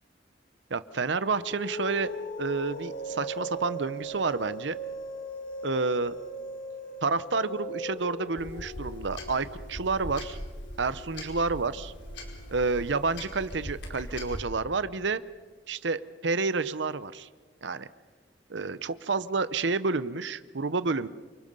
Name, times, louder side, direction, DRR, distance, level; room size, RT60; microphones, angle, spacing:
voice 1, 0.7-2.1 2.4-4.8 5.6-6.2 7.0-10.4 10.8-11.9 12.5-15.2 15.7-17.3 17.6-17.9 18.5-21.1, right 4 dB, 75° right, 14 dB, 0.8 m, -29 dB
sound 1, 0.9-13.7, right 1 dB, 50° left, 1.9 m, -40 dB
sound 2, 8.4-14.4, left 1 dB, 70° left, 4.7 m, -41 dB
29.0 x 25.0 x 5.5 m, 1.4 s
head